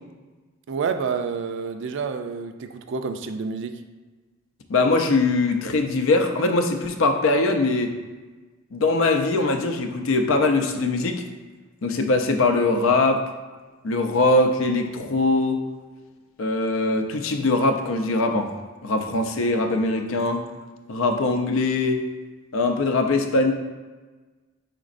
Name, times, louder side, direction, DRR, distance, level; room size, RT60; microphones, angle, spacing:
voice 1, 0.7-3.8, right 5 dB, 65° right, 8 dB, 0.4 m, -29 dB
voice 2, 4.7-8.0 8.7-11.2 11.8-13.2 13.8-15.6 16.4-18.5 18.8-20.5 20.9-22.0 22.5-23.5, left 2 dB, 80° left, 5 dB, 0.5 m, -21 dB
5.1 x 4.0 x 2.5 m, 1.3 s
head